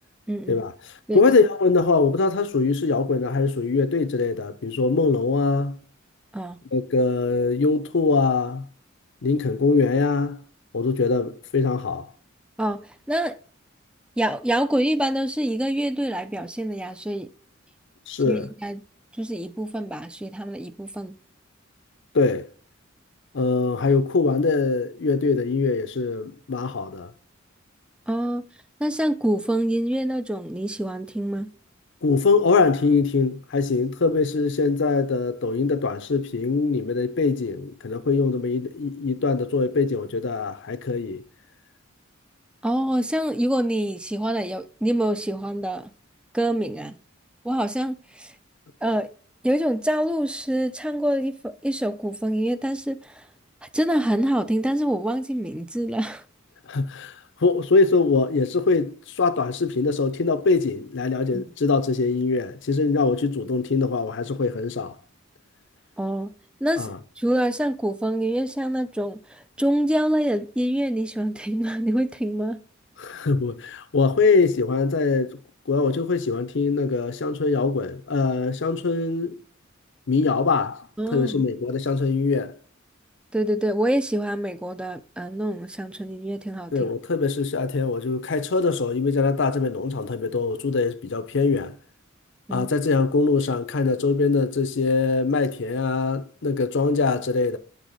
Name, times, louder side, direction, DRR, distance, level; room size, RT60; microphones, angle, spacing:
voice 1, 0.3-0.6 1.1-1.2 6.3-6.6 12.6-12.8 13.1-13.4 14.2-17.3 18.3-18.8 19.2-21.1 28.1-28.4 28.8-31.5 42.6-45.9 46.3-47.0 47.4-48.3 48.8-49.1 49.4-53.2 53.7-56.2 61.3-61.4 66.0-66.3 66.6-72.6 81.0-81.4 83.3-86.9 92.5-92.7, right 1 dB, 5° right, 0.4 m, -26 dB
voice 2, 1.1-5.8 6.7-8.6 9.2-10.4 10.7-12.1 18.1-18.5 22.1-22.5 23.3-27.1 32.0-41.2 56.7-57.1 57.4-64.9 66.8-67.0 73.0-75.4 75.7-79.3 80.1-80.8 81.1-82.5 86.7-91.8 92.5-97.6, left 4 dB, 60° left, 0.6 m, -22 dB
8.2 x 3.5 x 3.9 m
head